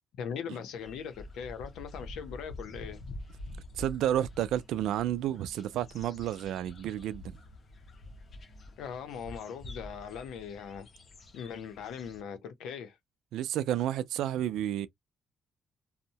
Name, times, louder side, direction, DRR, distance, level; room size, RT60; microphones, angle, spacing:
voice 1, 0.2-3.0 8.8-10.9 11.3-13.0, left 7 dB, 85° left, 0.6 m, -40 dB
sound 1, 0.8-12.2, left 1 dB, 50° left, 0.8 m, -47 dB
voice 2, 3.5-7.4 13.3-14.9, right 11 dB, 85° right, 0.3 m, -31 dB
2.6 x 2.1 x 2.7 m
cardioid pair, 90°, 0 cm